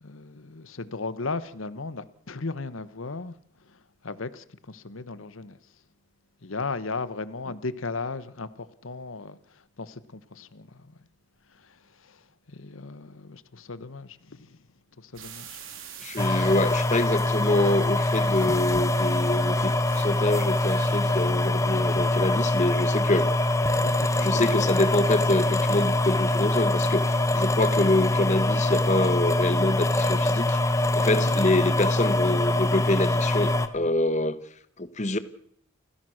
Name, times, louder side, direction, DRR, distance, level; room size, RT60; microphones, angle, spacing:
voice 1, 0.0-3.3 3.7-5.6 6.4-10.9 11.5-12.2 12.5-14.6 15.0-15.6 23.8-24.7 31.1-31.4, left 3 dB, 75° left, 1.1 m, -36 dB
sound 1, 15.1-21.5, right 6 dB, 80° right, 3.8 m, -45 dB
voice 2, 16.0-23.3 24.2-34.4 34.8-35.2, left 2 dB, 35° left, 1.3 m, -26 dB
sound 2, 16.2-33.7, left 2 dB, 15° left, 1.1 m, -24 dB
29.0 x 15.5 x 6.4 m
head